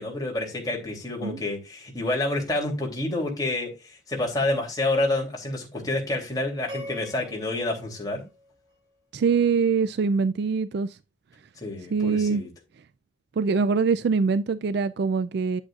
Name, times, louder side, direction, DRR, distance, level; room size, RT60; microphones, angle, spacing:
voice 1, 0.0-8.2 11.6-12.5, left 2 dB, 20° left, 3.0 m, -28 dB
sound 1, 6.7-9.1, equal, 20° right, 5.6 m, -43 dB
voice 2, 9.1-11.0 11.9-12.4 13.4-15.6, right 5 dB, 55° right, 0.3 m, -23 dB
9.8 x 8.7 x 2.5 m
head